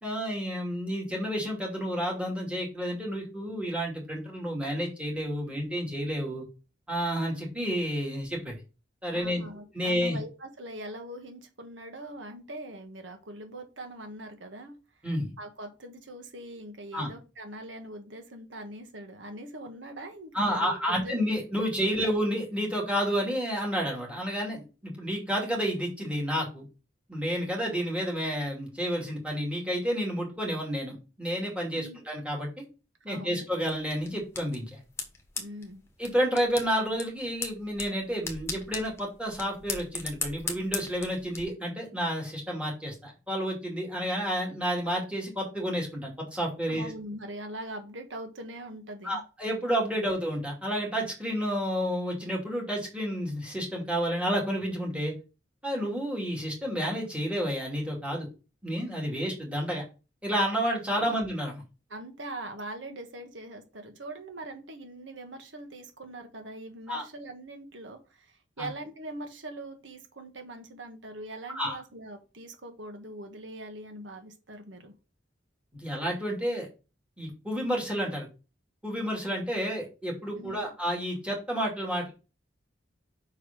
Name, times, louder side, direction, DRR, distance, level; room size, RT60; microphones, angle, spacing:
voice 1, 0.0-6.5 6.9-8.6 9.0-9.4 9.7-10.2 15.0-15.3 16.9-17.1 20.3-26.6 27.1-32.6 33.0-34.8 36.0-46.9 49.0-55.1 55.6-58.3 58.6-59.8 60.2-61.6 66.9-67.0 68.6-68.7 71.5-71.8 75.7-76.7 77.2-78.3 78.8-82.1, equal, 5° right, -2 dB, 2.4 m, -30 dB
voice 2, 9.1-14.8 15.4-21.4 31.7-32.0 33.1-33.5 35.4-35.8 46.7-49.2 61.0-61.2 61.9-74.9 80.3-80.7, right 1 dB, 85° right, 5 dB, 1.4 m, -42 dB
sound 1, 33.6-41.4, left 4 dB, 15° left, 1.3 m, -39 dB
5.7 x 4.8 x 5.3 m, 0.31 s
head